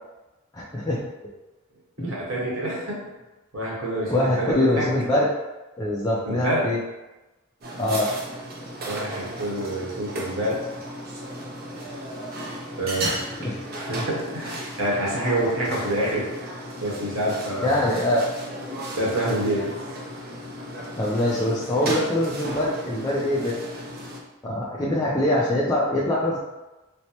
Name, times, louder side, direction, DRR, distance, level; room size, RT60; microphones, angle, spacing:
voice 1, 0.5-1.0 2.0-2.1 4.1-5.3 5.8-6.8 7.8-8.1 13.0-13.6 17.6-18.3 21.0-23.6 24.4-26.4, left 1 dB, 15° left, -6 dB, 0.4 m, -23 dB
voice 2, 2.0-3.1 3.5-4.9 6.2-6.7 8.9-10.6 12.8-16.3 16.8-17.9 19.0-19.7, right 1 dB, 65° right, -4 dB, 1.0 m, -27 dB
sound 1, 7.6-24.2, right 1 dB, 45° right, 0.5 m, -35 dB
4.4 x 2.1 x 2.8 m, 1.1 s
head